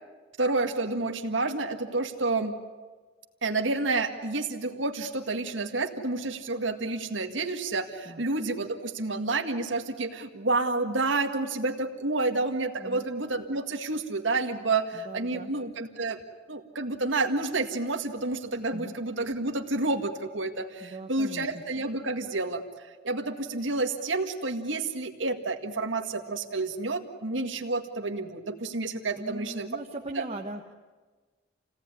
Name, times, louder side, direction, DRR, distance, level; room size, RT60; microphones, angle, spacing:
voice 1, 0.4-2.5 3.4-16.2 16.5-22.6 23.0-29.7 30.1-30.3, right 3 dB, 80° right, 4 dB, 1.9 m, -29 dB
voice 2, 15.0-15.5 18.7-18.9 20.8-21.5 29.1-30.7, right 1 dB, 35° right, 1 dB, 1.4 m, -39 dB
28.5 x 17.0 x 9.8 m, 1.3 s
head